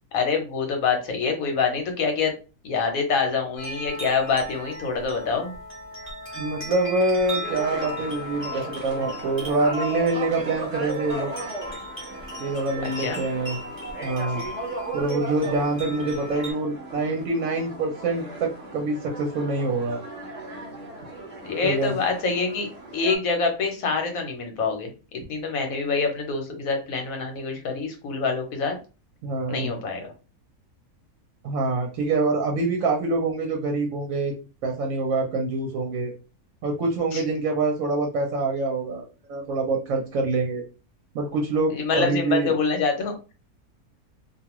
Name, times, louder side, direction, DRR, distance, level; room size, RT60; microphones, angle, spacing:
voice 1, 0.1-2.3 2.6-5.5 12.8-13.2 21.4-22.7 22.9-24.9 25.3-28.8 29.5-30.1 37.1-37.2 41.7-43.3, left 5 dB, 70° left, 4 dB, 1.2 m, -26 dB
sound 1, 3.6-16.5, left 1 dB, 10° right, 0.8 m, -37 dB
voice 2, 6.3-11.3 12.4-13.6 14.0-14.4 14.9-20.0 21.6-22.0 29.2-29.7 31.4-34.3 34.6-36.1 36.6-40.6 41.1-42.6, right 3 dB, 70° right, 1 dB, 1.0 m, -25 dB
sound 2, 7.4-23.2, right 2 dB, 40° right, 0.6 m, -36 dB
2.5 x 2.3 x 2.9 m, 0.32 s
omnidirectional pair, 1.6 m